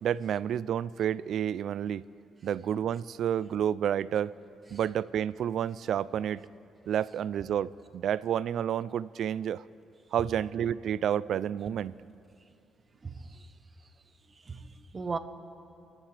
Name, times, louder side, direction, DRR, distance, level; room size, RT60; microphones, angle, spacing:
voice 1, 0.0-2.0 2.4-4.3 4.7-6.4 6.9-9.6 10.1-12.0, right 9 dB, 70° right, 19 dB, 0.3 m, -30 dB
voice 2, 13.1-13.5 14.5-15.2, right 4 dB, 35° right, 10 dB, 1.0 m, -37 dB
28.5 x 14.5 x 3.3 m, 2.7 s
cardioid pair, 90°, 0 cm